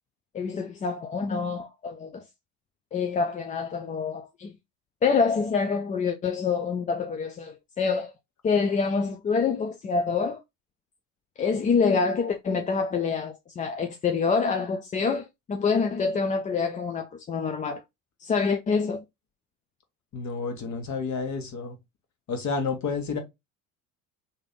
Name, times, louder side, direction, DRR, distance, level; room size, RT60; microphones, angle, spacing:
voice 1, 0.3-2.3 2.9-4.5 5.0-8.1 8.4-10.4 11.4-17.8 18.2-19.0, left 5 dB, 20° left, 0.4 m, -26 dB
voice 2, 20.1-21.8 22.3-23.2, left 4 dB, 40° left, 1.3 m, -30 dB
3.3 x 2.8 x 3.5 m
hypercardioid pair, 65°, 44 cm